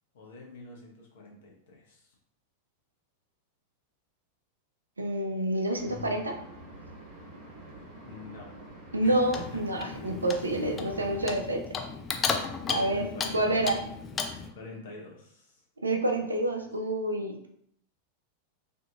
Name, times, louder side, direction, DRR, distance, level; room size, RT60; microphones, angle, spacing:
voice 1, 0.1-2.1 5.8-6.2 8.0-8.5 9.0-9.4 10.5-10.8 12.6-13.7 14.5-15.6, left 3 dB, 55° left, -2 dB, 0.8 m, -46 dB
voice 2, 5.0-6.3 8.9-11.6 12.7-13.8 15.8-17.5, right 1 dB, 80° right, 3 dB, 0.4 m, -28 dB
sound 1, 5.7-11.4, right 1 dB, 40° right, 1.0 m, -47 dB
Clock, 9.0-14.5, left 5 dB, 20° left, 0.3 m, -35 dB
2.7 x 2.6 x 2.3 m, 0.70 s
figure-of-eight pair, 90°, 0 cm